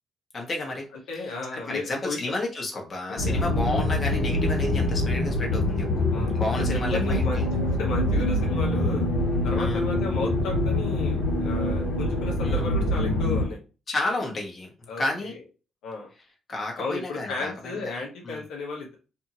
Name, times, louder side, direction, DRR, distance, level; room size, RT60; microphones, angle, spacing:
voice 1, 0.3-0.9 1.5-6.0 6.3-7.5 9.5-9.8 12.4-12.6 13.9-14.7 15.0-15.3 16.5-18.4, left 2 dB, 40° left, 0 dB, 1.1 m, -31 dB
voice 2, 1.1-2.3 3.2-3.4 3.7-3.8 6.1-7.4 7.8-9.1 9.4-13.6 14.9-15.4 15.8-16.1 16.8-18.9, left 3 dB, 90° left, -1 dB, 0.9 m, -34 dB
sound 1, 3.2-13.5, left 1 dB, 65° left, 1.3 m, -25 dB
2.7 x 2.5 x 2.8 m, 0.32 s
cardioid pair, 90°, 0 cm